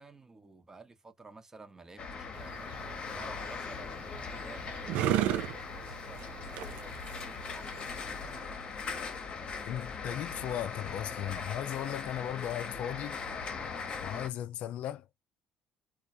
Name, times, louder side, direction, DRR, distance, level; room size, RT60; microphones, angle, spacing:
voice 1, 0.0-8.7, right 3 dB, 20° right, 0.8 m, -53 dB
sound 1, 2.0-14.3, left 5 dB, 45° left, 0.8 m, -40 dB
sound 2, 2.3-8.4, right 12 dB, 80° right, 0.4 m, -35 dB
voice 2, 9.7-13.2 14.0-15.1, left 11 dB, 70° left, 0.4 m, -37 dB
2.3 x 2.1 x 2.6 m
supercardioid pair, 75°, 2 cm